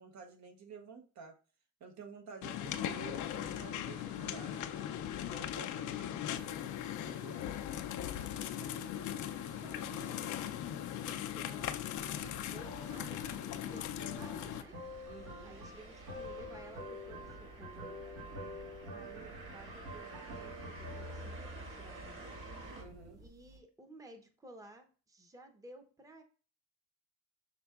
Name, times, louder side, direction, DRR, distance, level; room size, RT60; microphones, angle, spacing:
voice 1, 0.0-1.3 1.8-4.6 5.2-6.6 7.0-7.4 15.0-15.5 22.7-23.2, right 5 dB, 65° right, 5 dB, 0.9 m, -51 dB
sound 1, 2.4-14.6, left 11 dB, 75° left, 0.5 m, -39 dB
sound 2, 2.9-22.8, right 1 dB, 45° right, 1.7 m, -53 dB
voice 2, 8.1-8.9 9.5-15.1 15.4-18.0 18.9-22.4 23.2-26.2, right 2 dB, 10° right, 5 dB, 0.7 m, -55 dB
sound 3, 12.0-23.6, equal, 85° right, 1.7 m, -48 dB
5.9 x 3.6 x 2.3 m, 0.37 s
cardioid pair, 90°, 30 cm